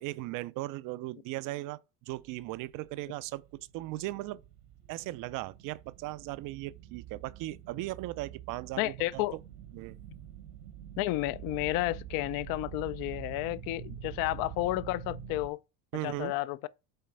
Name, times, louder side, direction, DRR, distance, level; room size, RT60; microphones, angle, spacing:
voice 1, 0.0-4.4 4.9-9.2 9.7-10.0 15.9-16.3, right 18 dB, 45° right, 0.4 m, -38 dB
sound 1, 2.2-15.5, right 10 dB, 80° right, 1.6 m, -46 dB
voice 2, 8.8-9.4 11.0-15.6 16.0-16.7, left 17 dB, 50° left, 0.4 m, -31 dB
5.7 x 3.8 x 5.2 m
supercardioid pair, 110°, 46 cm